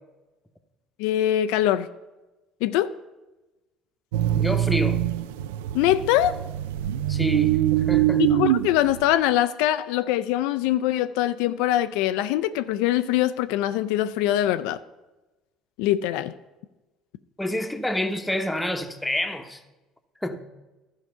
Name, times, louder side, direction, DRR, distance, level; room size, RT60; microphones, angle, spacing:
voice 1, 1.0-1.9 2.6-2.9 5.7-6.4 8.2-14.8 15.8-16.3, left 13 dB, 80° left, 11 dB, 0.3 m, -23 dB
sound 1, 4.1-9.1, right 13 dB, 85° right, 0.3 m, -24 dB
voice 2, 4.3-5.0 7.1-8.2 17.4-19.6 20.2-20.4, left 1 dB, 5° left, 6 dB, 1.0 m, -28 dB
12.0 x 4.7 x 6.6 m, 1.1 s
hypercardioid pair, 75°, 0 cm